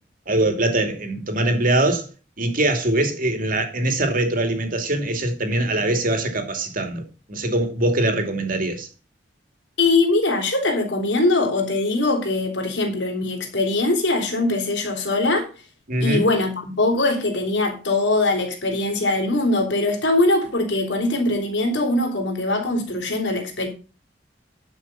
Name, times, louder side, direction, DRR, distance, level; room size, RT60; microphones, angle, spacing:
voice 1, 0.3-2.0 2.4-7.0 7.3-8.9 15.9-16.3, right 1 dB, 50° right, 2.7 m, -22 dB
voice 2, 9.8-15.5 16.0-23.7, left 2 dB, 85° left, 3.7 m, -22 dB
11.5 x 6.2 x 5.6 m
head